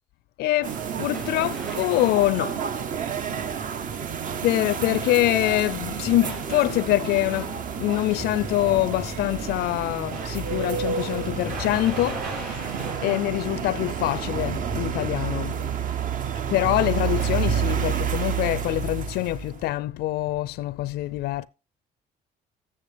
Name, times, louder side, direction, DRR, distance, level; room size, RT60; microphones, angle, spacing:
voice 1, 0.4-2.6 4.4-15.7 16.5-21.5, left 16 dB, 70° left, 0.4 m, -25 dB
sound 1, 0.6-19.7, right 8 dB, 50° right, 0.8 m, -30 dB
sound 2, 0.6-18.0, right 3 dB, 65° right, 5.6 m, -42 dB
sound 3, 3.3-4.6 5.1-13.5 13.8-16.6 16.9-19.3 20.1-20.4, left 2 dB, 5° left, 0.5 m, -41 dB
15.0 x 6.7 x 3.3 m
cardioid pair, 110°, 17 cm